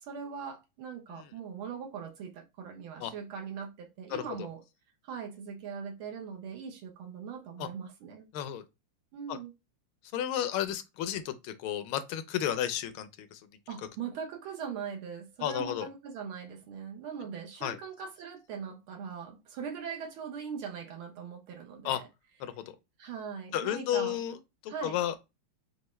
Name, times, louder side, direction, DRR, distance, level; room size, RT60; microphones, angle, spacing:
voice 1, 0.0-4.6 5.0-8.3 9.1-9.5 13.7-22.1 23.0-24.2 24.7-25.0, right 6 dB, 80° right, 1.7 m, -41 dB
voice 2, 10.1-13.4 15.4-15.9 17.6-17.8 21.8-22.0 22.4-22.6 23.5-24.4 24.6-25.1, left 11 dB, 80° left, 1.4 m, -32 dB
5.6 x 2.5 x 3.1 m
omnidirectional pair, 2.3 m